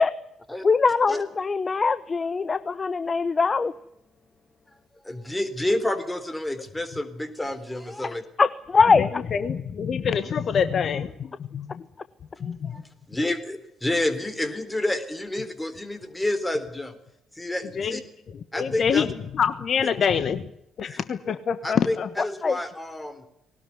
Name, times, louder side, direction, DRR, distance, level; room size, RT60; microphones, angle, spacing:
voice 1, 0.6-3.7 8.4-9.2 22.4-22.6, left 4 dB, 30° left, 15 dB, 1.0 m, -21 dB
voice 2, 5.0-8.2 12.4-16.9 17.4-18.0 18.5-19.1 19.8-19.9 20.8-21.0 21.6-23.3, left 1 dB, 10° left, 11 dB, 3.7 m, -29 dB
voice 3, 9.0-11.1 11.5-11.8 12.4-12.8 17.8-18.0 18.6-19.1 19.3-20.4 20.8-22.1, left 7 dB, 45° left, 12 dB, 1.3 m, -25 dB
20.0 x 19.0 x 9.6 m, 0.81 s
figure-of-eight pair, 45°, 0 cm